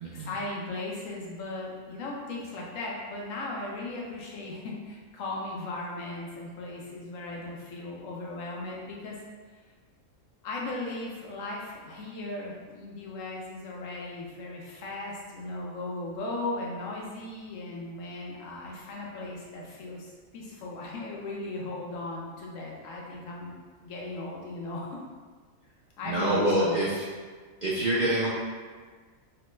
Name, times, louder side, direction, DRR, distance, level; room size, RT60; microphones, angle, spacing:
voice 1, 0.1-9.2 10.4-23.5 23.8-25.0 26.0-26.8, left 2 dB, 75° left, -2 dB, 1.0 m, -37 dB
voice 2, 26.1-27.0 27.6-28.3, right 1 dB, 60° right, -9 dB, 0.5 m, -26 dB
3.1 x 2.1 x 2.9 m, 1.5 s
omnidirectional pair, 1.4 m